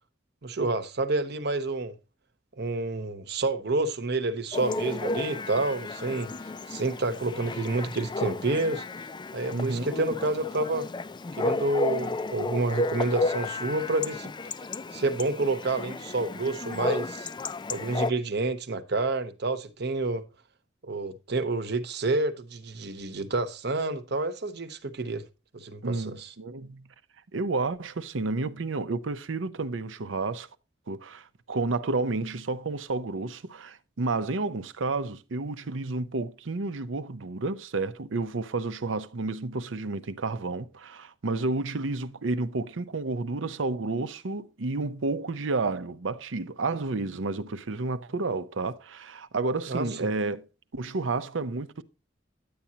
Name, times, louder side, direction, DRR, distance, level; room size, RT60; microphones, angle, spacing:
voice 1, 0.4-2.0 2.6-6.3 6.7-8.8 9.3-10.9 11.4-14.3 14.9-17.3 17.7-20.2 20.8-25.2 25.5-26.3 49.7-50.1, right 2 dB, 60° right, 1.0 m, -29 dB
Chatter / Bark / Livestock farm animals working animals, 4.5-18.1, left 3 dB, 25° left, 0.4 m, -33 dB
voice 2, 9.5-9.9 25.8-26.9 27.3-30.5 30.9-50.5 50.7-51.8, right 3 dB, 90° right, 0.7 m, -31 dB
10.5 x 8.6 x 2.9 m
head